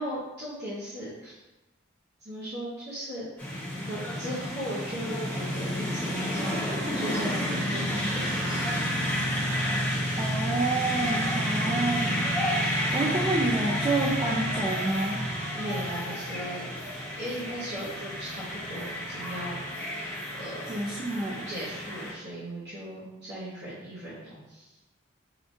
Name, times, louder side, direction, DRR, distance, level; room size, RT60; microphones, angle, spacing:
voice 1, 0.0-1.4 2.2-3.3 3.7-6.7 6.9-8.8 15.5-16.6 16.9-20.7 21.4-24.8, right 1 dB, 55° right, -10 dB, 0.9 m, -38 dB
sound 1, 3.4-22.1, equal, 10° left, 0.7 m, -30 dB
voice 2, 10.2-12.2 12.9-15.3 20.7-21.5, right 2 dB, 25° right, -4 dB, 0.3 m, -28 dB
4.9 x 2.4 x 2.5 m, 1.0 s
head